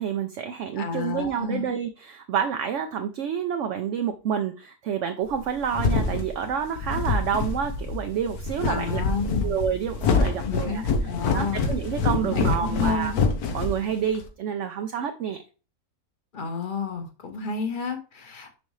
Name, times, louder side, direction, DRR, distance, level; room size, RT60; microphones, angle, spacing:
voice 1, 0.0-9.0 9.4-10.8 11.3-13.1 13.5-15.4, right 8 dB, 65° right, 6 dB, 0.8 m, -28 dB
voice 2, 0.8-1.7 8.6-9.6 10.2-11.6 12.2-13.2 16.3-18.5, left 5 dB, 40° left, 6 dB, 1.0 m, -31 dB
sound 1, 5.3-14.3, left 4 dB, 80° left, 1.4 m, -26 dB
6.3 x 5.1 x 3.2 m, 0.34 s
omnidirectional pair, 1.6 m